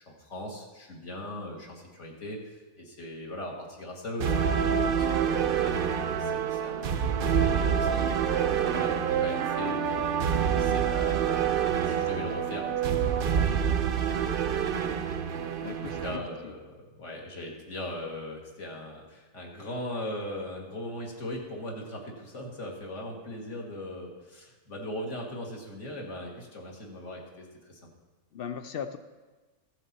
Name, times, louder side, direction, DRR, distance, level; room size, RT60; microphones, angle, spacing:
voice 1, 0.1-5.9 6.2-8.1 8.5-13.6 14.0-14.6 15.8-16.7 17.0-27.8, left 1 dB, 55° left, -1 dB, 1.9 m, -39 dB
sound 1, 4.2-16.2, right 8 dB, 65° right, 0.5 m, -27 dB
voice 2, 15.6-16.5 28.3-29.0, left 7 dB, 75° left, 9 dB, 0.5 m, -38 dB
15.0 x 7.2 x 4.0 m, 1.2 s
omnidirectional pair, 1.6 m